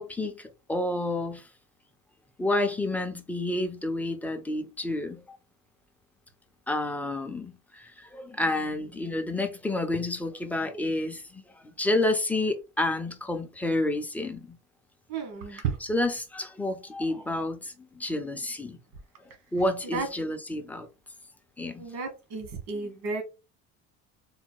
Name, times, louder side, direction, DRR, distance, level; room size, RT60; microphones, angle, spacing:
voice 1, 0.0-1.5 2.4-5.4 6.7-14.6 15.5-15.6 15.9-18.8 19.5-20.9 21.6-21.9, left 2 dB, 5° left, 0.3 m, -30 dB
voice 2, 15.1-15.8 19.9-20.1 21.8-23.2, right 5 dB, 80° right, 1.4 m, -32 dB
4.0 x 2.1 x 4.4 m
cardioid pair, 165°, 29 cm